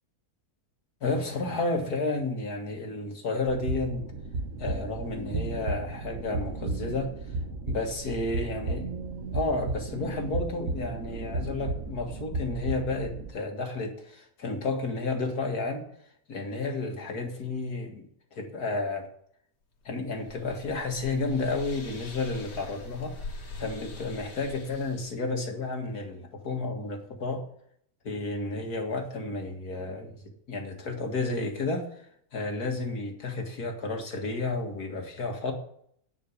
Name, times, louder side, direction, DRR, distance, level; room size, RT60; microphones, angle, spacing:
voice 1, 1.0-4.1 4.6-7.1 7.7-8.8 9.3-15.8 16.3-18.1 18.3-19.1 19.9-27.4 28.0-30.2 30.5-31.9 32.3-35.5, left 3 dB, 65° left, 3 dB, 2.4 m, -31 dB
sound 1, 3.5-13.3, right 3 dB, 55° right, 1.4 m, -34 dB
sound 2, 19.8-25.2, left 3 dB, 85° left, 2.5 m, -43 dB
10.0 x 6.6 x 8.5 m, 0.65 s
omnidirectional pair, 1.8 m